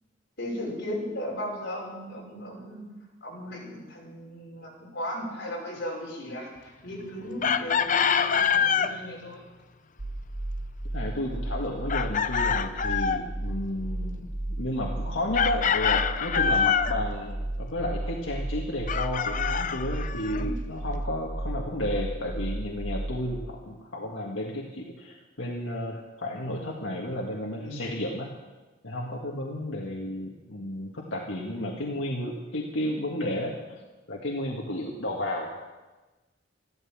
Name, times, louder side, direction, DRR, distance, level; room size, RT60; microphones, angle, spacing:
voice 1, 0.4-2.8 3.2-9.4 20.3-20.6 27.6-27.9, left 1 dB, 60° left, -3 dB, 5.9 m, -36 dB
Chicken rooster, 7.4-8.9 11.9-13.2 15.3-17.0 18.9-20.4, left 7 dB, 40° left, 0.6 m, -25 dB
sound 1, 10.0-23.3, right 1 dB, 50° right, 1.6 m, -33 dB
voice 2, 10.9-28.3 28.8-33.6 34.1-35.5, left 1 dB, 90° left, -2 dB, 1.8 m, -32 dB
14.0 x 12.5 x 7.4 m, 1.2 s
head